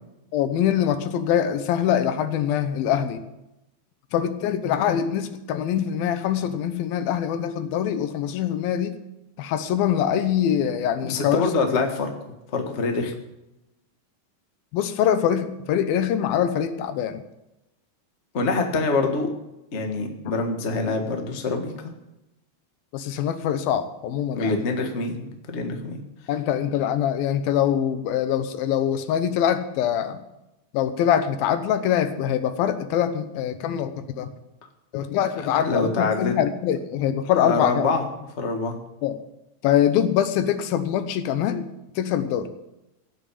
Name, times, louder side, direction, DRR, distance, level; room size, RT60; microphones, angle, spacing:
voice 1, 0.3-3.2 4.1-9.0 9.4-11.5 14.7-17.2 22.9-24.6 26.3-30.2 30.7-34.3 34.9-37.9 39.0-39.2 39.6-41.7 42.0-42.5, left 9 dB, 85° left, 10 dB, 2.8 m, -24 dB
voice 2, 11.0-12.1 12.5-13.1 18.3-19.3 19.7-21.9 24.3-26.0 35.6-36.3 37.3-38.0 38.4-38.8, left 3 dB, 55° left, 4 dB, 0.7 m, -25 dB
16.5 x 6.3 x 8.4 m, 0.92 s
omnidirectional pair, 4.1 m